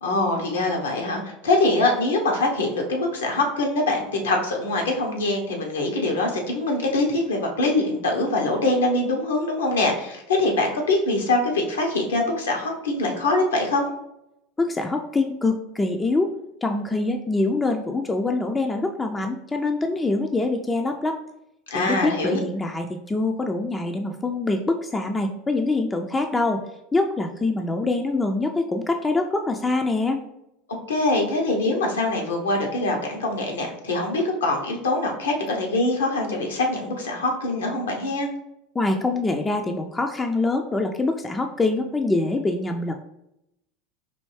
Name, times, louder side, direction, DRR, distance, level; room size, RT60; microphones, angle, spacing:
voice 1, 0.0-13.9 21.7-22.4 30.9-38.3, left 2 dB, 80° left, 1 dB, 0.8 m, -23 dB
voice 2, 14.6-16.3 16.6-21.2 21.7-26.6 26.9-30.2 38.7-42.9, left 2 dB, 15° left, 4 dB, 0.3 m, -24 dB
4.3 x 2.6 x 3.2 m, 0.84 s
hypercardioid pair, 80°, 0 cm